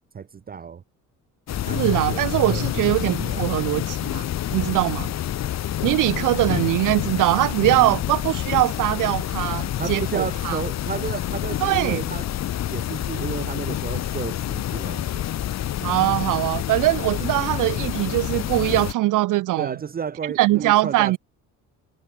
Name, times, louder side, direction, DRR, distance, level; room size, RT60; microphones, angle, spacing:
voice 1, 0.1-0.8 1.6-3.5 7.7-8.0 9.8-12.2 12.7-15.4 19.6-21.2, right 7 dB, 30° right, 1.1 m, -33 dB
sound 1, 1.5-18.9, left 12 dB, 55° left, 2.6 m, -28 dB
voice 2, 1.8-4.3 4.5-5.1 5.8-10.6 11.6-12.0 15.8-19.7 20.4-21.2, right 17 dB, 70° right, 0.9 m, -22 dB
cardioid pair, 150°, 32 cm